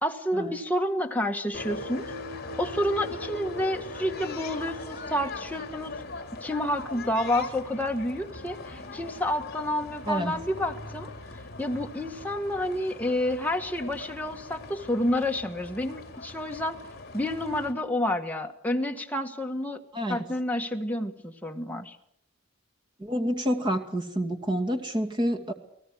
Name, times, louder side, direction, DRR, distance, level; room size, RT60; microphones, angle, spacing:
voice 1, 0.0-2.1 2.6-5.9 6.4-16.8 17.1-19.8 20.1-22.0, left 1 dB, 10° left, 3 dB, 1.6 m, -29 dB
sound 1, 1.5-17.7, left 3 dB, 50° left, 3.6 m, -40 dB
voice 2, 23.0-25.5, equal, 25° right, 6 dB, 2.3 m, -28 dB
29.5 x 19.0 x 6.4 m, 0.72 s
head